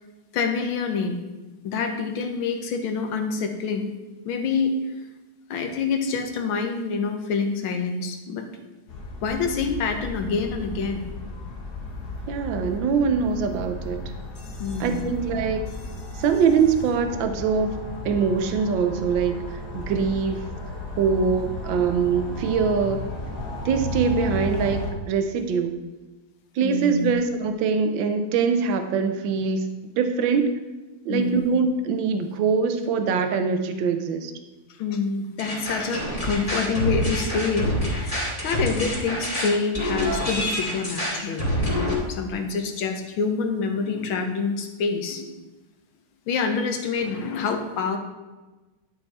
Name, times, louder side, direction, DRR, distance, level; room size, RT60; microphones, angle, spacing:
voice 1, 0.3-1.2 1.6-3.9 4.3-4.7 5.5-8.4 9.2-11.1 14.6-15.1 26.6-27.1 31.1-31.4 34.8-45.3 46.3-48.0, left 5 dB, 80° left, 5 dB, 1.8 m, -27 dB
sound 1, 8.9-24.9, left 2 dB, 55° left, 1.5 m, -34 dB
voice 2, 12.3-14.0 14.8-15.6 16.2-17.8 18.0-20.4 21.0-23.0 23.6-25.8 26.5-29.7 29.9-30.6 31.0-34.3, right 5 dB, 70° right, 7 dB, 1.5 m, -23 dB
sound 2, 35.4-41.9, equal, 15° left, 2.5 m, -26 dB
11.5 x 5.7 x 4.2 m, 1.2 s
omnidirectional pair, 2.2 m